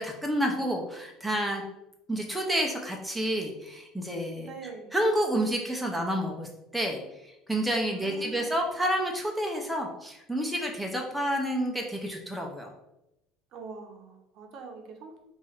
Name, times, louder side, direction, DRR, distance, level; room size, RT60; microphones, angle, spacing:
voice 1, 0.0-1.6 2.1-4.5 4.9-12.7, equal, 5° right, 1 dB, 0.4 m, -29 dB
voice 2, 4.5-5.0 7.9-8.6 13.5-15.2, right 5 dB, 50° right, 3 dB, 0.6 m, -44 dB
2.9 x 2.3 x 4.2 m, 0.89 s
cardioid pair, 145°, 0 cm